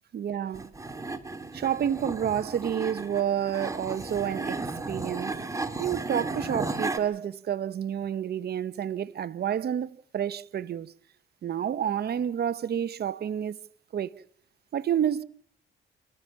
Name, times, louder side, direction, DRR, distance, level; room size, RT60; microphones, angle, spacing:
voice 1, 0.1-0.7 1.5-5.4 5.8-10.9 11.4-13.6 13.9-14.1 14.7-15.2, right 9 dB, 55° right, 1.0 m, -29 dB
sound 1, 0.5-7.0, right 3 dB, 15° right, 2.3 m, -34 dB
28.5 x 13.5 x 7.2 m
cardioid pair, 90°, 20 cm